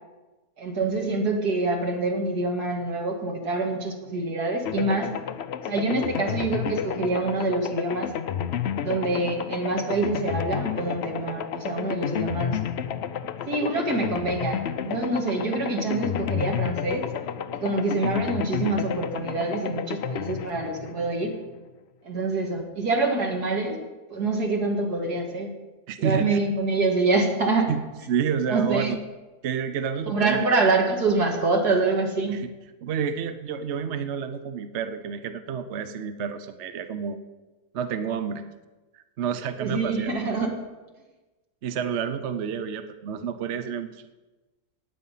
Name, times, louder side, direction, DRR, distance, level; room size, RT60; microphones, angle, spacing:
voice 1, 0.6-5.1 5.7-8.1 8.8-12.6 13.5-17.1 17.6-21.3 22.0-23.8 24.1-25.5 26.0-27.7 28.5-28.9 30.1-32.4 39.6-40.6, right 3 dB, 85° right, 1 dB, 2.7 m, -26 dB
sound 1, 4.6-21.6, left 8 dB, 60° left, 0.7 m, -31 dB
voice 2, 25.9-26.4 27.7-27.8 28.1-29.0 29.4-30.5 32.3-32.5 32.8-37.2 37.7-38.4 39.2-40.1 41.6-44.0, right 7 dB, 55° right, 8 dB, 0.9 m, -29 dB
16.0 x 9.5 x 5.6 m, 1.2 s
omnidirectional pair, 1.6 m